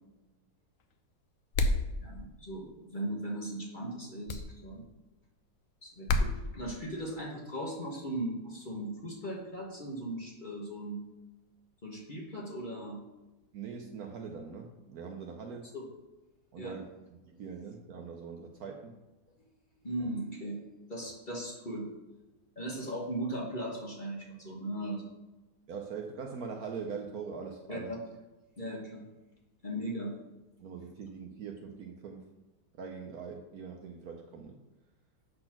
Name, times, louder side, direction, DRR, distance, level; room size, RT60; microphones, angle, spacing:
sound 1, 1.5-1.9 4.3-4.5 6.1-6.3, left 2 dB, 70° left, 0.8 m, -27 dB
voice 1, 2.0-4.8 5.8-6.3 6.5-11.0 11.8-13.0 15.7-15.9 16.6-16.7 19.8-20.6 20.9-21.9 22.6-25.1 27.7-27.8 28.6-29.1 29.6-30.2, right 1 dB, 30° left, -3 dB, 1.3 m, -38 dB
voice 2, 13.5-15.7 16.5-16.9 17.2-19.0 20.0-20.1 25.7-27.9 30.6-32.3 32.8-34.6, right 5 dB, 65° right, 2 dB, 1.1 m, -42 dB
7.7 x 4.2 x 5.9 m, 1.1 s
omnidirectional pair, 2.0 m